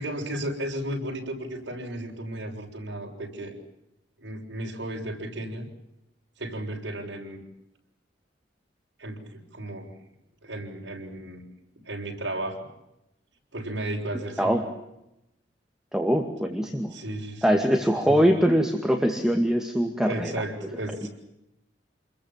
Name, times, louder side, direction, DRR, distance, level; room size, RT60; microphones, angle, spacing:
voice 1, 0.0-3.5 4.2-5.7 6.4-7.4 9.0-9.9 10.4-11.4 11.9-12.7 13.5-14.6 16.9-17.6 18.0-18.2 20.0-21.1, right 1 dB, 75° right, 0 dB, 6.9 m, -34 dB
voice 2, 15.9-16.9 17.4-20.3, equal, 5° right, 2 dB, 2.1 m, -22 dB
28.0 x 22.0 x 7.5 m, 0.86 s
head